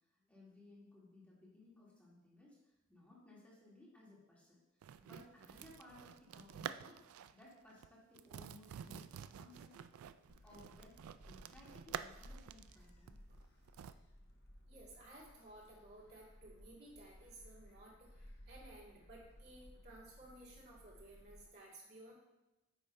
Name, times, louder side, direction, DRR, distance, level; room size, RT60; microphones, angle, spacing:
voice 1, 0.1-4.6 5.0-7.0 7.3-9.7 10.4-13.2, left 2 dB, 5° left, -7 dB, 1.8 m, -61 dB
sound 1, 4.8-7.4 7.7-7.9 8.1-13.9, right 8 dB, 85° right, 0.3 m, -49 dB
Gull seagull, 10.3-21.5, equal, 50° left, 1.0 m, -60 dB
voice 2, 14.7-22.1, right 1 dB, 50° right, -6 dB, 2.4 m, -57 dB
8.6 x 3.3 x 5.3 m, 1.0 s
head